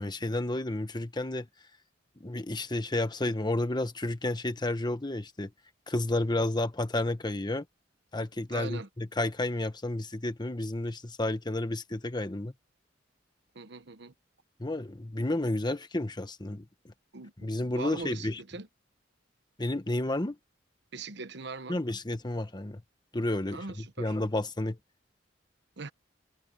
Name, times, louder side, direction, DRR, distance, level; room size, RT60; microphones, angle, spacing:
voice 1, 0.0-1.5 2.2-5.5 5.9-7.6 8.1-12.5 14.6-16.9 17.4-18.4 19.6-20.4 21.7-22.8 23.1-24.8, left 1 dB, 25° left, 1.2 m, -31 dB
voice 2, 8.5-8.9 13.5-14.1 17.1-18.7 20.9-21.8 23.5-24.1 25.8-25.9, right 3 dB, 65° right, 1.1 m, -41 dB
head